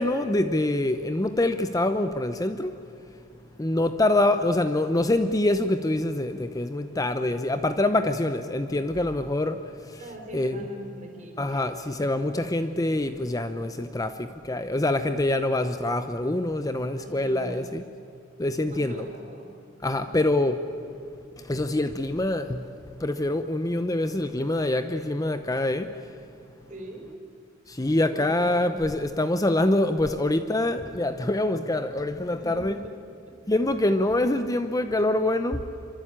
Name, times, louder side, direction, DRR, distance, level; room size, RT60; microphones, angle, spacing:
voice 1, 0.0-2.7 3.6-10.0 10.3-10.6 11.4-17.8 18.4-19.1 19.8-20.6 21.4-22.7 23.0-25.9 27.7-32.8 33.5-35.6, left 1 dB, 20° left, 0.7 m, -25 dB
voice 2, 10.0-11.7 16.9-17.8 18.7-19.6 20.8-20.9 26.7-27.1 28.1-28.8 32.3-32.9 33.3-33.4, right 1 dB, 40° right, 4.6 m, -42 dB
25.5 x 24.5 x 8.9 m
head